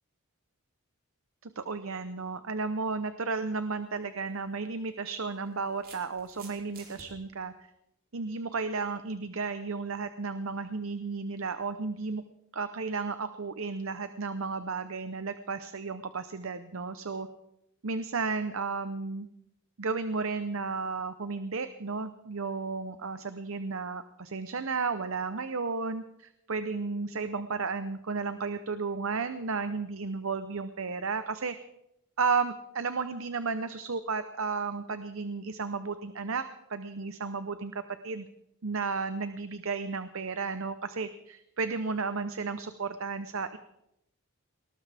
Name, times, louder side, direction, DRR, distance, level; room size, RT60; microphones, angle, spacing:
voice 1, 1.4-7.5 8.1-12.2 12.5-17.3 17.8-19.3 19.8-31.6 32.2-36.4 36.7-38.3 38.6-43.6, right 4 dB, 65° right, 10 dB, 0.8 m, -33 dB
sound 1, 3.9-4.1 5.1-7.1, right 5 dB, 45° right, 3.5 m, -51 dB
20.0 x 18.5 x 3.5 m, 0.82 s
head